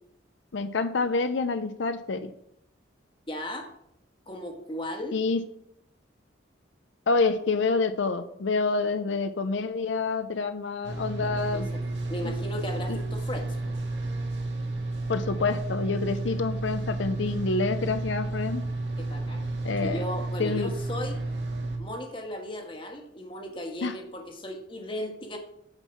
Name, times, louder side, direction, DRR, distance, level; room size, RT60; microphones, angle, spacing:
voice 1, 0.5-2.3 5.1-5.4 7.1-11.7 12.2-12.3 12.9-13.0 15.1-18.6 19.6-20.0 20.4-20.7 23.8-24.0, left 4 dB, 70° left, 10 dB, 0.6 m, -27 dB
voice 2, 3.3-3.7 4.3-5.2 11.2-11.8 12.1-13.8 19.0-19.5 19.8-21.2 21.8-25.4, left 1 dB, 25° left, 3 dB, 1.4 m, -36 dB
sound 1, 10.8-21.8, right 2 dB, 65° right, 1.8 m, -32 dB
8.7 x 4.6 x 7.1 m, 0.76 s
head